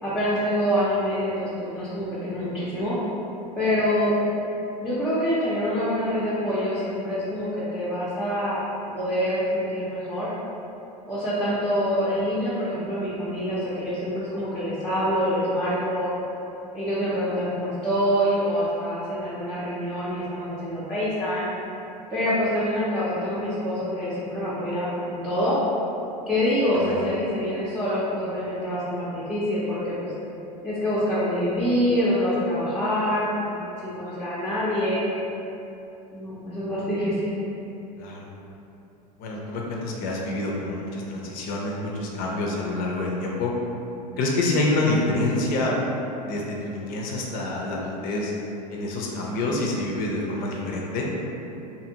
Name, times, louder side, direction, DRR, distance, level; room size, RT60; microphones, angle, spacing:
voice 1, 0.0-3.0 3.6-4.2 4.8-8.6 8.9-10.3 11.1-16.1 16.7-21.5 22.1-25.6 26.3-30.1 30.6-35.0 36.1-37.3, equal, ahead, -11 dB, 0.6 m, -26 dB
voice 2, 26.7-27.1 38.0-38.3 39.2-43.5 44.2-45.8 46.2-48.3 48.7-51.1, left 2 dB, 45° left, -2 dB, 0.5 m, -27 dB
2.6 x 2.4 x 2.8 m, 2.9 s
hypercardioid pair, 90°, 21 cm